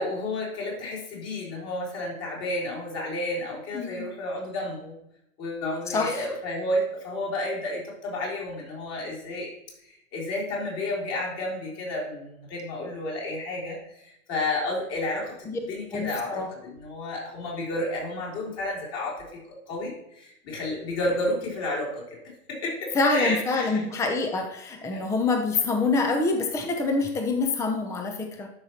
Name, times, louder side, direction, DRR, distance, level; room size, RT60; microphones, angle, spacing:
voice 1, 0.0-4.9 5.4-9.5 9.8-22.0 22.6-23.8 24.9-25.0, left 1 dB, 35° left, -3 dB, 3.6 m, -31 dB
voice 2, 3.7-4.1 5.9-6.3 15.5-15.6 15.9-16.5 22.9-28.5, left 3 dB, 5° left, 6 dB, 0.6 m, -26 dB
12.5 x 5.7 x 2.9 m, 0.80 s
hypercardioid pair, 115°, 42 cm